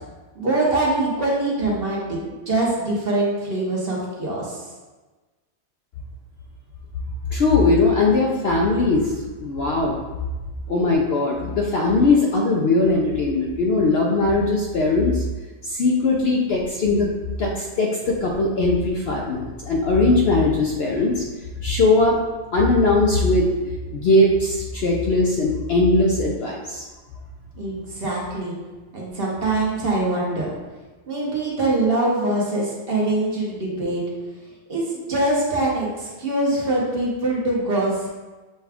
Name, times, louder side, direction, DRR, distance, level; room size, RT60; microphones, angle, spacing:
voice 1, 0.3-4.6 27.5-28.6 28.9-30.5 31.1-34.0 34.7-38.1, right 2 dB, 50° right, -4 dB, 1.0 m, -23 dB
voice 2, 7.3-9.1 9.4-10.0 10.7-15.2 15.6-17.1 17.4-21.2 21.6-22.2 22.5-26.9, left 2 dB, 65° left, -1 dB, 0.7 m, -20 dB
6.6 x 2.3 x 3.4 m, 1.2 s
omnidirectional pair, 1.4 m